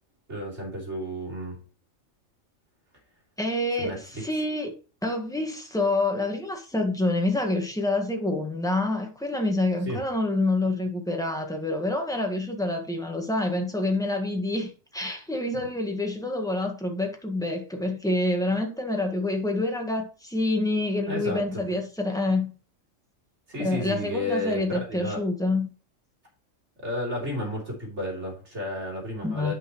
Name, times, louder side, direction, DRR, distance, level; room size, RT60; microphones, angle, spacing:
voice 1, 0.3-1.6 3.8-4.2 9.9-10.0 15.5-15.7 21.1-21.6 23.5-25.2 26.8-29.5, left 1 dB, 55° right, 3.6 m, -32 dB
voice 2, 3.4-4.7 5.0-22.5 23.6-25.7 29.2-29.5, left 2 dB, 5° left, 1.5 m, -27 dB
9.5 x 5.9 x 3.1 m
omnidirectional pair, 1.4 m